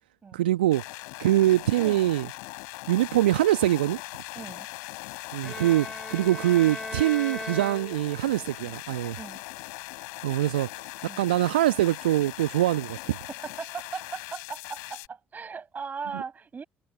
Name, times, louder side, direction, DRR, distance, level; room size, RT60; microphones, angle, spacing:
voice 1, 0.3-0.8 1.2-2.3 2.9-4.0 5.3-9.2 10.2-13.2 16.1-16.2, right 14 dB, 75° right, 1.2 m, -24 dB
sound 1, 0.7-15.1, left 32 dB, 65° left, 5.7 m, -40 dB
voice 2, 4.3-4.7 9.2-9.4 11.1-11.3 13.3-16.6, right 5 dB, 30° right, 6.2 m, -38 dB
Bowed string instrument, 5.4-8.6, left 1 dB, 5° left, 6.5 m, -38 dB
figure-of-eight pair, 50°, 5 cm